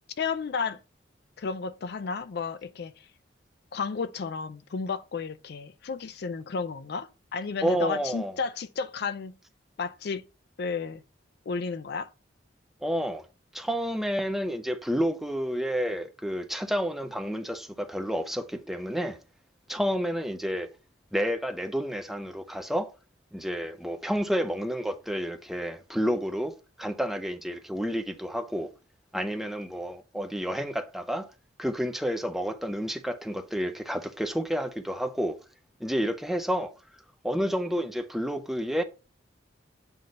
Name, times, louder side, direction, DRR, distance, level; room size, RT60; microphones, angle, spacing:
voice 1, 0.2-0.8 1.4-2.9 3.7-9.3 9.8-10.2 10.6-11.0 11.5-12.1, left 5 dB, 55° left, 0.4 m, -32 dB
voice 2, 7.6-8.4 12.8-13.2 13.5-19.2 19.7-20.7 21.1-22.9 23.3-26.5 26.8-28.7 29.1-31.3 31.6-35.4 35.8-36.7 37.2-38.8, equal, ahead, 0.5 m, -30 dB
7.7 x 2.7 x 5.2 m
head